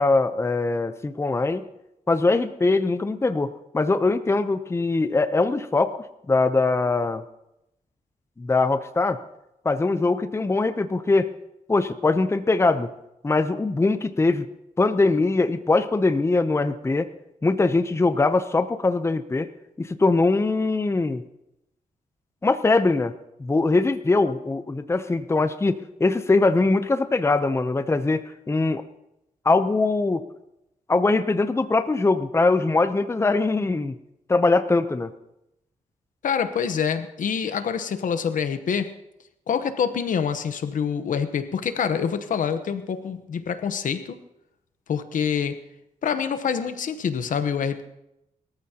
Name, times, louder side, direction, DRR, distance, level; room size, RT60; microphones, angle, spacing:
voice 1, 0.0-1.6 2.1-6.0 6.3-7.2 8.4-9.2 9.6-11.3 11.7-12.9 13.2-14.4 14.8-17.1 17.4-19.5 19.8-21.2 22.4-23.1 23.4-28.8 29.4-30.2 30.9-34.0 34.3-35.1, left 3 dB, 20° left, 11 dB, 0.7 m, -22 dB
voice 2, 36.2-38.9 39.5-44.2 44.9-45.6 46.0-47.8, left 7 dB, 75° left, 10 dB, 1.0 m, -26 dB
22.0 x 14.0 x 2.9 m, 0.86 s
cardioid pair, 90°, 14 cm